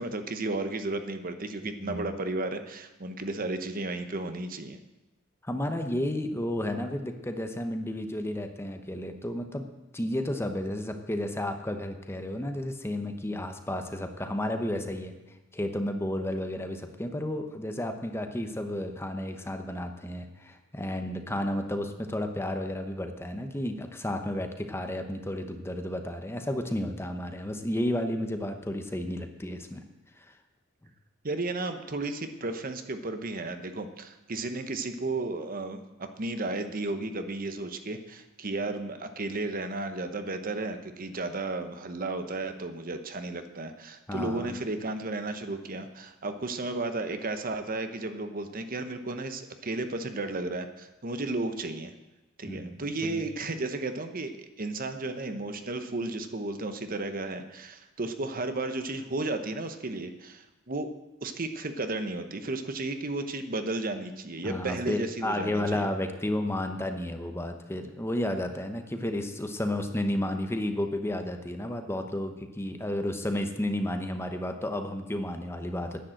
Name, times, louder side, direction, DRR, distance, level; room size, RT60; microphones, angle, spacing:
voice 1, 0.0-4.8 31.2-51.9 52.4-60.9 61.2-65.9, right 2 dB, 45° right, 8 dB, 1.0 m, -33 dB
voice 2, 5.4-9.7 9.9-15.1 15.5-29.8 30.2-30.3 44.1-44.6 52.5-53.2 64.4-76.0, left 1 dB, 10° left, 6 dB, 1.0 m, -32 dB
10.5 x 10.5 x 7.7 m, 1.0 s
head